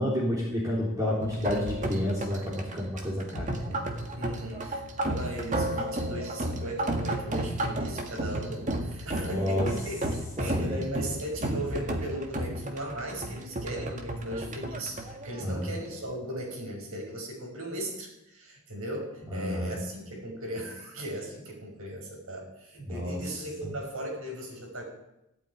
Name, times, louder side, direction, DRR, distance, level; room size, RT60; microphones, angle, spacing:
voice 1, 0.0-3.8 9.1-9.6 10.4-10.8 15.4-15.7 19.3-19.8 22.9-23.2 23.6-23.7, left 1 dB, 15° right, -5 dB, 3.7 m, -30 dB
sound 1, 1.2-16.1, right 1 dB, 35° right, 1.9 m, -33 dB
voice 2, 4.1-24.8, right 1 dB, 70° right, 0 dB, 5.7 m, -37 dB
15.5 x 8.8 x 9.6 m, 0.88 s
head